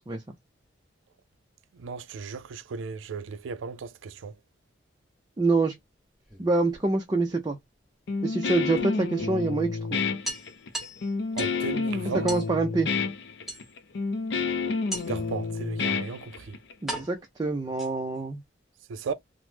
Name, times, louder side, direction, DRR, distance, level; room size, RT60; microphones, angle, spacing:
voice 1, 1.8-4.3 11.4-12.3 15.1-16.6 18.9-19.1, right 5 dB, 85° right, 0.4 m, -35 dB
voice 2, 5.4-5.7 6.4-7.6 8.2-10.0 12.0-12.9 16.8-18.4, right 3 dB, 20° right, 0.4 m, -26 dB
sound 1, 6.1-7.3 8.8-8.9 9.2-9.3 9.6-9.7 10.2-11.6 12.3-12.5 13.5-14.0 14.9-15.3 16.2-16.3 16.9-18.2, right 1 dB, ahead, 0.9 m, -38 dB
Guitar, 8.1-16.7, left 4 dB, 60° left, 0.4 m, -29 dB
2.9 x 2.0 x 3.3 m
head